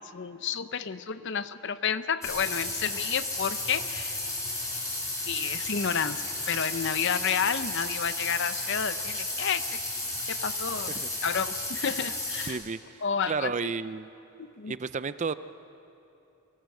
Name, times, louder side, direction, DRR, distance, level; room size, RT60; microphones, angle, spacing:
voice 1, 0.1-4.2 5.3-9.8 10.3-10.9 11.2-12.6 13.0-13.7 14.4-14.7, left 7 dB, 55° left, 13 dB, 0.6 m, -30 dB
sound 1, 2.2-12.5, left 2 dB, 15° left, 3.7 m, -33 dB
voice 2, 12.5-14.1 14.7-15.3, right 5 dB, 30° right, 14 dB, 0.4 m, -32 dB
23.5 x 18.5 x 7.8 m, 2.7 s
head